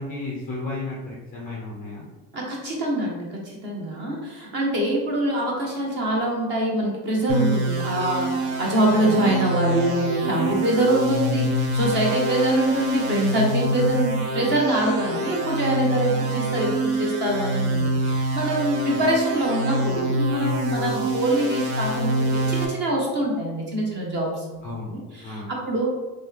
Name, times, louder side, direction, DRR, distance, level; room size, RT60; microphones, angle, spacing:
voice 1, 0.0-2.0 18.9-19.1 24.6-25.5, left 2 dB, 25° left, -5 dB, 0.3 m, -33 dB
voice 2, 2.3-25.9, right 1 dB, 25° right, -1 dB, 0.6 m, -24 dB
sound 1, 7.3-22.7, right 1 dB, 80° right, 0.9 m, -26 dB
3.1 x 2.9 x 3.7 m, 1.2 s
cardioid pair, 180°, 42 cm